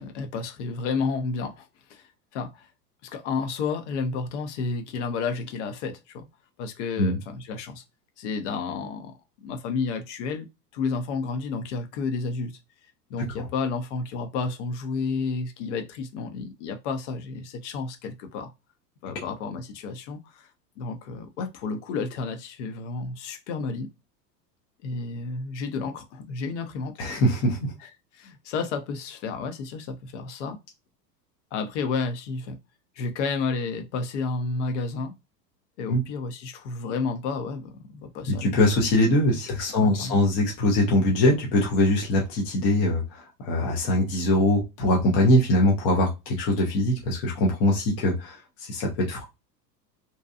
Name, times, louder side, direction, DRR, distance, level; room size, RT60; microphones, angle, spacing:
voice 1, 0.0-2.7 3.0-6.3 6.6-7.8 8.2-10.5 10.7-12.6 13.1-18.5 19.0-20.5 20.8-23.9 24.8-26.9 27.8-27.9 28.1-30.6 31.5-32.6 33.0-35.2 35.8-38.5 39.8-40.2, left 4 dB, 45° left, 0.6 m, -31 dB
voice 2, 27.0-27.7 35.9-36.0 38.4-49.2, left 1 dB, 15° left, 0.3 m, -22 dB
2.7 x 2.3 x 2.3 m
figure-of-eight pair, 85°, 49 cm